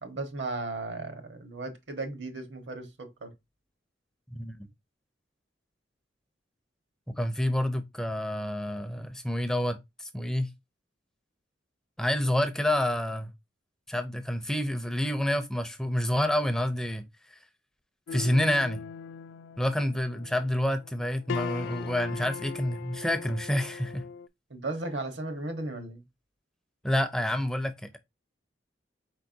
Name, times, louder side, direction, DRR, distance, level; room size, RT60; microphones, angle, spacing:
voice 1, 0.0-3.3 24.5-26.0, right 2 dB, 70° right, 1.2 m, -36 dB
voice 2, 4.3-4.7 7.2-10.5 12.0-13.3 13.9-17.0 17.3-17.4 18.1-18.8 19.6-24.0 26.8-28.0, left 1 dB, 5° left, 0.4 m, -28 dB
sound 1, 18.1-24.3, left 6 dB, 75° left, 0.3 m, -40 dB
4.5 x 4.2 x 2.6 m
head